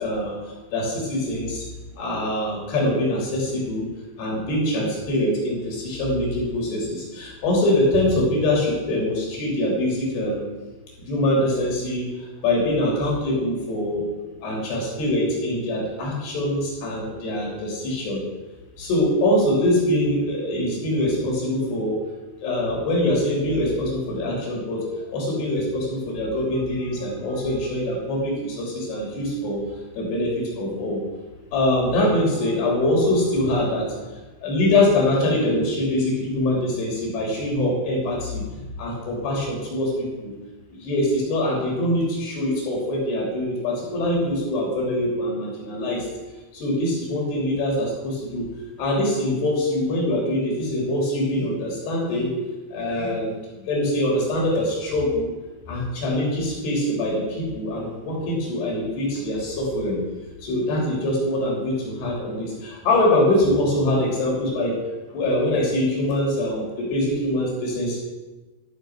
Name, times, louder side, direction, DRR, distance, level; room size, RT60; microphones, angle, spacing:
voice 1, 0.0-1.6 2.0-3.9 4.2-10.4 11.0-12.1 12.4-14.1 14.4-18.2 18.8-22.0 22.4-24.9 25.1-29.6 30.0-31.0 31.5-33.9 34.4-38.4 38.8-40.3 40.7-46.1 46.5-48.5 48.8-52.3 52.7-55.3 55.7-60.0 60.4-64.8 65.1-68.0, left 1 dB, 60° left, -2 dB, 5.0 m, -23 dB
13.5 x 7.1 x 6.1 m, 1.2 s
omnidirectional pair, 5.5 m